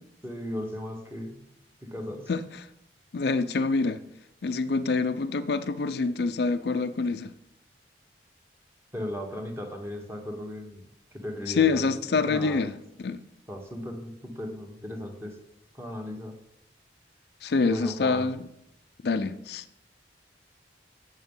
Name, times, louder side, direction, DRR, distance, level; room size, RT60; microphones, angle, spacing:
voice 1, 0.2-1.5 1.8-2.3 8.9-11.9 12.3-12.6 13.5-15.4 15.7-16.4 17.7-18.3, left 1 dB, 15° right, 1.4 m, -36 dB
voice 2, 3.1-4.0 4.4-7.3 11.5-12.7 13.0-13.2 17.4-18.4 19.0-19.6, left 4 dB, 60° left, 0.5 m, -26 dB
8.0 x 7.1 x 5.4 m
head